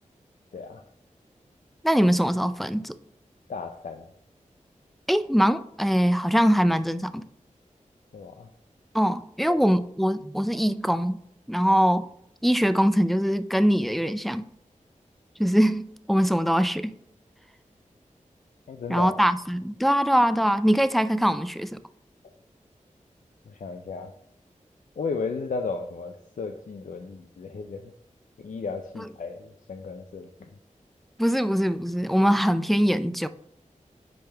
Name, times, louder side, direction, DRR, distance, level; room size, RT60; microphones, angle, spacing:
voice 1, 0.5-0.8 3.5-4.0 8.1-8.5 9.5-9.6 18.7-19.1 23.5-24.1 25.0-27.9 28.4-30.3, left 4 dB, 75° left, 5 dB, 0.5 m, -34 dB
voice 2, 1.8-3.0 5.1-7.2 8.9-11.2 11.5-12.1 12.4-14.4 15.4-16.9 18.9-21.8 29.0-29.1 31.2-33.3, equal, ahead, 11 dB, 0.3 m, -22 dB
10.0 x 3.5 x 3.4 m, 0.72 s
wide cardioid pair, 65°, 13 cm